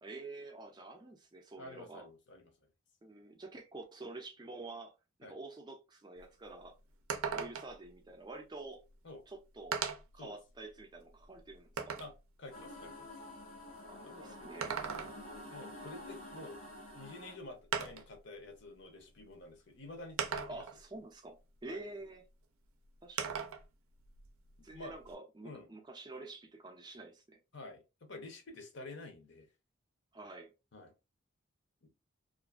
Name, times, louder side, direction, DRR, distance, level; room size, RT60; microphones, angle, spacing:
voice 1, 0.0-2.1 3.0-4.9 5.2-6.8 7.2-8.8 9.3-9.8 10.1-12.0 13.8-14.8 20.5-22.2 23.0-23.5 24.6-27.4 30.1-30.5, right 2 dB, 20° right, 0.4 m, -48 dB
voice 2, 1.6-2.5 5.2-5.3 9.0-9.2 10.2-10.4 12.0-12.1 12.4-13.1 14.0-14.3 15.5-16.6 16.9-20.6 21.7-21.8 24.6-24.9 25.4-25.7 27.5-27.8 28.1-29.5 30.7-30.9 31.8-32.0, left 2 dB, 55° left, 0.6 m, -49 dB
sound 1, 6.2-6.3 6.6-6.7 7.1-7.8 8.9-9.0 9.7-10.2 10.8-12.2 14.4-15.4 16.9-17.0 17.7-18.2 19.2-19.3 20.2-20.8 23.2-23.7 24.0-25.1, right 6 dB, 85° right, 0.4 m, -38 dB
sound 2, 12.5-17.3, left 1 dB, 90° left, 1.4 m, -49 dB
2.4 x 2.4 x 2.3 m
head